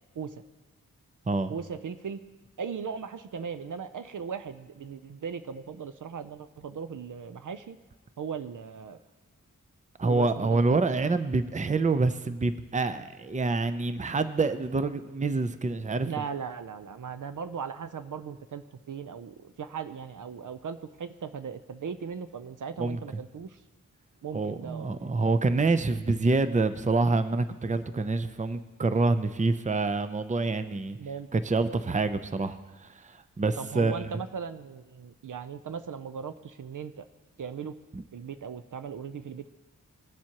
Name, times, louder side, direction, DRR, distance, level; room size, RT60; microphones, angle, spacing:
voice 1, 1.5-2.2 2.6-7.8 8.2-9.0 10.0-10.8 16.0-23.6 24.2-25.1 31.0-31.3 33.6-37.0 37.4-37.8 38.1-39.5, right 6 dB, 65° right, 11 dB, 0.5 m, -38 dB
voice 2, 10.0-16.2 22.8-23.0 24.3-31.0 31.3-34.1 37.9-38.0, right 3 dB, 20° right, 12 dB, 0.6 m, -27 dB
18.5 x 7.4 x 2.9 m, 1.2 s
cardioid pair, 50°, 34 cm